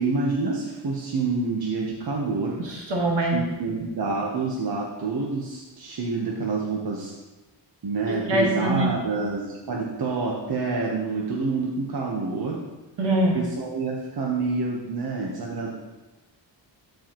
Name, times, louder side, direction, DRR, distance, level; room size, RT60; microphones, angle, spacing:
voice 1, 0.0-2.6 3.3-7.1 7.8-12.6 13.3-15.7, right 4 dB, 55° right, -2 dB, 1.2 m, -27 dB
voice 2, 2.6-3.4 8.1-8.9 13.0-13.4, right 1 dB, 70° right, -1 dB, 1.9 m, -23 dB
12.5 x 4.8 x 3.1 m, 1.1 s
cardioid pair, 75°, 45 cm